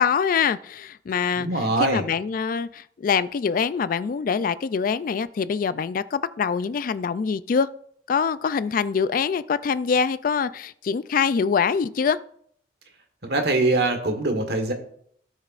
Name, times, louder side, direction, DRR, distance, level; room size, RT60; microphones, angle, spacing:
voice 1, 0.0-7.7 8.1-12.2, left 6 dB, 50° left, 16 dB, 0.3 m, -24 dB
voice 2, 1.4-2.0 13.2-14.7, right 2 dB, 60° right, 5 dB, 1.4 m, -23 dB
17.0 x 6.4 x 2.5 m, 0.64 s
head